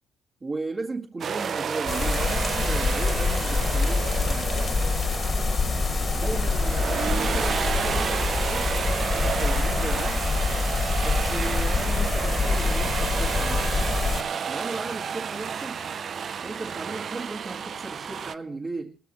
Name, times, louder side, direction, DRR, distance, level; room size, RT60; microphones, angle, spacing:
voice 1, 0.4-4.8 6.1-10.3 11.0-13.6 14.5-15.8 16.4-19.0, right 3 dB, 30° right, 2.0 m, -36 dB
sound 1, 1.2-18.4, right 7 dB, 55° right, 0.8 m, -31 dB
sound 2, 1.9-14.2, left 4 dB, 40° left, 2.2 m, -25 dB
22.0 x 19.0 x 3.2 m
cardioid pair, 90°, 0 cm